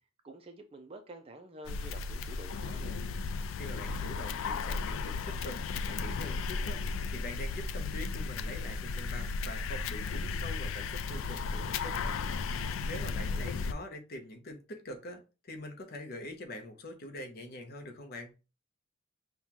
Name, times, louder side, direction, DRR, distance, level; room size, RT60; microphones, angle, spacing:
voice 1, 0.2-3.0 13.0-13.5, right 2 dB, 30° right, 0.4 m, -49 dB
sound 1, 1.7-13.7, left 4 dB, 70° left, 0.3 m, -35 dB
voice 2, 3.6-18.3, left 1 dB, 50° left, 0.8 m, -44 dB
5.6 x 2.2 x 2.9 m
head